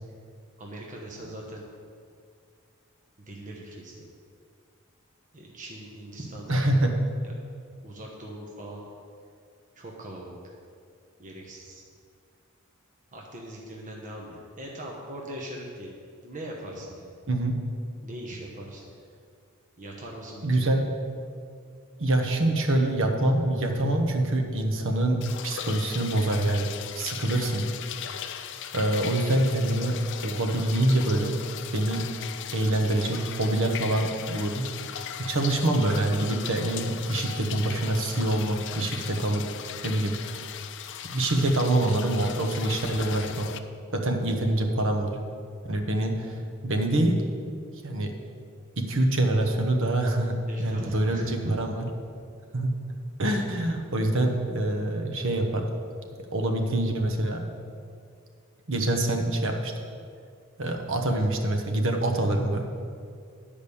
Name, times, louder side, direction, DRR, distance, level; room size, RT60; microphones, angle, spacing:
voice 1, 0.6-1.6 3.3-4.1 5.3-6.8 7.8-8.8 9.7-10.4 11.2-11.8 13.1-15.9 16.2-17.1 18.0-18.8 19.8-20.8 50.5-51.5, right 1 dB, 35° right, -2 dB, 1.0 m, -40 dB
voice 2, 6.5-6.9 17.3-17.6 20.4-20.8 22.0-26.7 26.9-27.6 28.7-30.0 30.2-31.4 31.7-32.1 32.5-34.7 35.0-39.4 39.8-40.1 41.1-43.5 43.9-45.2 45.6-47.2 47.8-48.1 48.8-51.8 52.5-52.7 53.2-55.7 56.3-57.4 58.7-59.7 60.6-62.6, right 1 dB, 60° right, 3 dB, 1.1 m, -25 dB
sound 1, 25.2-43.6, left 9 dB, 55° left, 0.5 m, -38 dB
10.0 x 5.1 x 7.0 m, 2.3 s
head